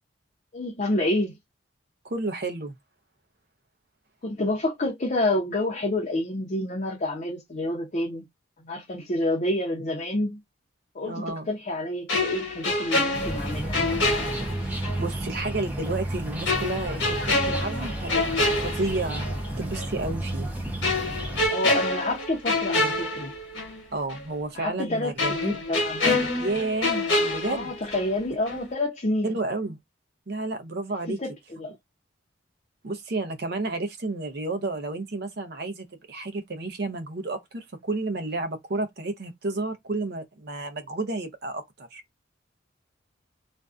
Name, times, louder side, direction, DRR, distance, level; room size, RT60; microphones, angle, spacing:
voice 1, 0.5-1.3 4.2-8.2 8.6-10.4 10.9-13.9 21.5-23.3 24.5-26.3 27.4-29.4 31.2-31.7, left 1 dB, 40° left, 0.6 m, -28 dB
voice 2, 2.0-2.7 11.0-11.5 14.6-18.3 18.6-20.5 23.9-25.6 26.4-27.7 29.2-29.8 30.3-31.2 32.8-42.0, right 2 dB, 55° right, 0.6 m, -31 dB
sound 1, 12.1-15.0 15.4-15.5 16.5-19.4 19.7-19.9 20.8-23.8 24.1-24.2 25.2-28.2 28.5-28.7, left 2 dB, 70° left, 1.1 m, -27 dB
sound 2, 13.1-21.5, right 1 dB, 10° right, 0.5 m, -32 dB
2.5 x 2.2 x 2.3 m
head